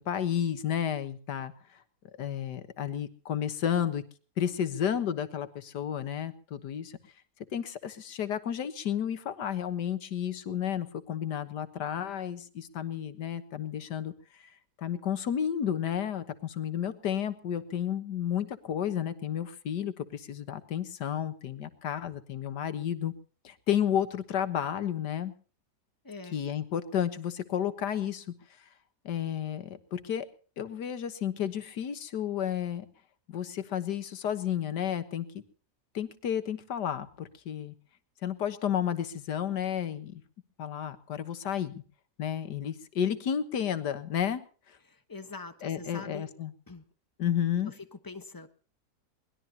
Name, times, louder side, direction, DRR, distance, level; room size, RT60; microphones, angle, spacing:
voice 1, 0.0-1.5 2.2-4.0 4.4-7.0 7.5-14.1 14.8-23.1 23.4-25.3 26.3-28.3 29.1-30.3 30.6-32.9 33.3-35.4 35.9-37.7 38.2-40.2 40.6-41.7 42.2-44.4 45.6-46.5 47.2-47.7, left 9 dB, 80° left, 11 dB, 1.9 m, -32 dB
voice 2, 26.0-26.4 44.9-46.3 46.7-46.8 47.6-48.5, left 4 dB, 15° left, 9 dB, 1.2 m, -44 dB
23.0 x 20.0 x 2.9 m, 0.40 s
omnidirectional pair, 1.8 m